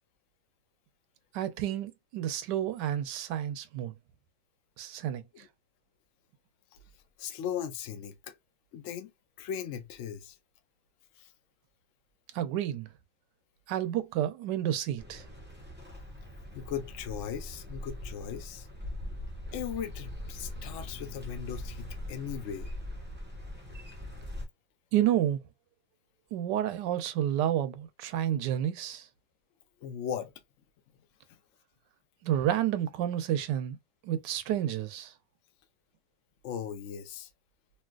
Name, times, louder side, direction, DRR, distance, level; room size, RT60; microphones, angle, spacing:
voice 1, 1.3-3.9 4.8-5.2 12.3-12.9 13.7-15.2 24.9-25.4 26.3-29.1 32.2-33.8 34.0-35.1, right 11 dB, 75° right, 1.1 m, -30 dB
voice 2, 7.2-8.3 8.7-9.1 9.4-10.4 11.2-11.3 16.5-18.7 19.5-22.7 29.8-30.3 36.4-37.3, left 8 dB, 70° left, 0.7 m, -38 dB
sound 1, 15.0-24.5, left 1 dB, 15° right, 0.3 m, -41 dB
3.2 x 2.9 x 2.3 m
omnidirectional pair, 2.0 m